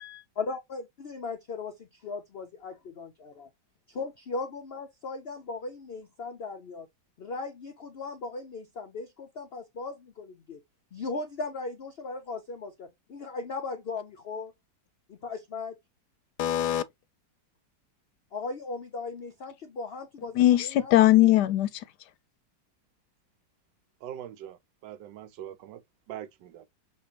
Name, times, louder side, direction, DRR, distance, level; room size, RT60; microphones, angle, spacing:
voice 1, 0.4-3.5 3.9-6.9 7.2-10.6 10.9-14.5 15.1-15.8 18.3-21.0, left 3 dB, 90° left, 0.5 m, -37 dB
voice 2, 16.4-16.8 20.3-21.8, left 14 dB, 75° left, 1.1 m, -21 dB
voice 3, 24.0-25.8 26.1-26.7, right 11 dB, 85° right, 1.3 m, -42 dB
6.6 x 2.5 x 2.8 m
omnidirectional pair, 1.9 m